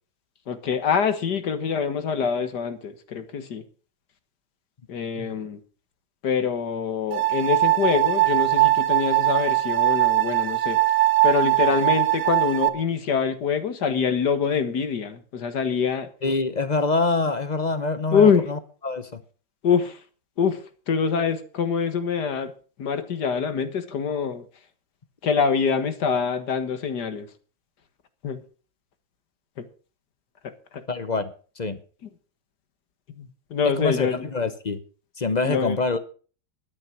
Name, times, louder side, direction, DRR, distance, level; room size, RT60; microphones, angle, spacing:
voice 1, 0.5-3.6 4.9-5.6 6.2-10.8 11.2-16.1 18.1-18.4 19.6-20.0 20.4-22.5 22.8-24.4 25.2-27.3 28.2-28.4 30.7-30.8 32.0-32.1 33.2-34.3 35.4-35.8, left 6 dB, 60° left, 1.9 m, -25 dB
sound 1, 7.1-12.7, right 16 dB, 65° right, 1.6 m, -21 dB
voice 2, 16.2-18.6 18.8-19.2 30.9-31.8 33.8-34.8 35.2-36.0, left 3 dB, 40° left, 0.6 m, -25 dB
12.0 x 10.0 x 5.9 m
omnidirectional pair, 2.1 m